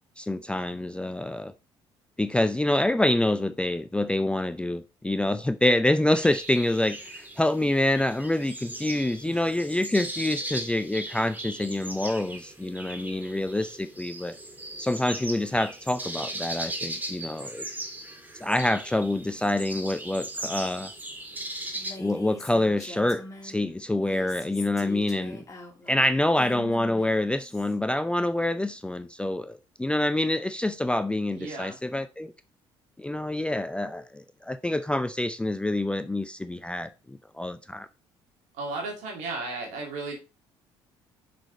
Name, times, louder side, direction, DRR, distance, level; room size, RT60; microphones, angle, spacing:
voice 1, 0.2-1.5 2.2-14.4 14.8-17.7 18.4-20.9 22.0-25.4 25.9-32.3 33.0-37.9, left 1 dB, 10° left, 0.5 m, -26 dB
sound 1, 6.1-21.9, right 1 dB, 15° right, 1.8 m, -38 dB
voice 2, 9.2-9.6 31.3-31.8 38.6-40.2, right 3 dB, 65° right, 2.4 m, -35 dB
Female speech woman speaking, 21.7-23.6 24.0-27.7, left 2 dB, 25° left, 2.5 m, -42 dB
6.3 x 5.1 x 3.8 m
figure-of-eight pair, 55°, 14 cm